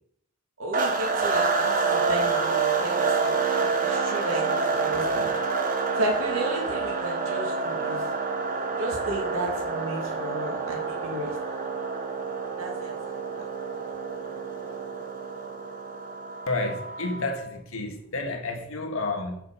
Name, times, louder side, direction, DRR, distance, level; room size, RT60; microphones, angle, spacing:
voice 1, 0.6-5.3 5.9-8.0 8.8-11.4 12.6-12.9, equal, 80° right, 2.6 m, -33 dB
sound 1, 0.7-17.4, right 4 dB, 40° right, 1.1 m, -28 dB
voice 2, 16.5-19.4, left 2 dB, 80° left, 1.5 m, -30 dB
6.6 x 6.4 x 5.5 m
head